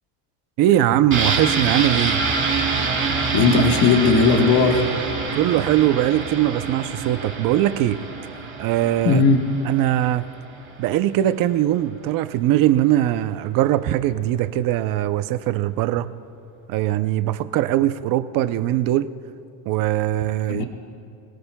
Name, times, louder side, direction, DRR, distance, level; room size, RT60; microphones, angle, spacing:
voice 1, 0.6-2.2 5.3-8.0 8.6-9.2 9.6-10.2 10.8-16.1 16.7-19.1 19.7-20.6, right 13 dB, 45° right, 12 dB, 0.6 m, -21 dB
sound 1, 1.1-10.7 11.0-11.1, right 4 dB, 25° right, 2.0 m, -26 dB
voice 2, 3.3-4.8 9.0-9.4 20.5-20.7, left 4 dB, 50° left, 2 dB, 1.4 m, -17 dB
27.5 x 17.5 x 2.2 m, 2.6 s
cardioid pair, 145°, 50 cm